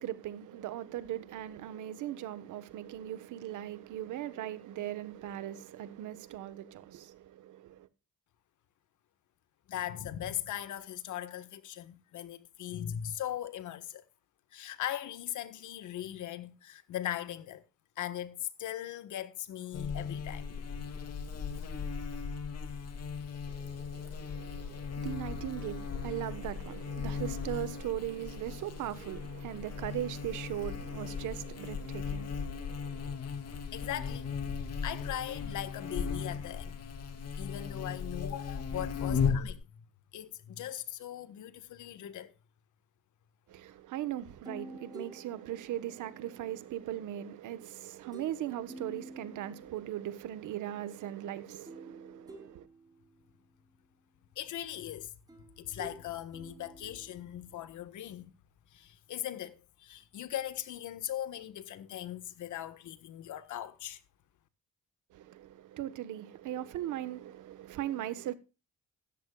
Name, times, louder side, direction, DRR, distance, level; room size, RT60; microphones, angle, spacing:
voice 1, 0.0-7.9 23.5-33.2 43.5-52.7 65.1-68.3, right 12 dB, 85° right, 1.4 m, -39 dB
voice 2, 9.7-14.1 14.5-17.6 18.0-20.5 33.7-36.8 37.4-39.7 40.1-42.3 54.3-55.1 55.6-58.3 58.7-64.0, left 11 dB, 75° left, 1.5 m, -39 dB
Buzz, 19.7-39.5, left 6 dB, 55° left, 2.5 m, -37 dB
sound 1, 44.4-46.7 48.1-48.4 48.7-50.0 51.7-53.4 55.3-57.6, right 1 dB, 15° right, 4.2 m, -50 dB
16.0 x 13.5 x 2.4 m
cardioid pair, 90°, 30 cm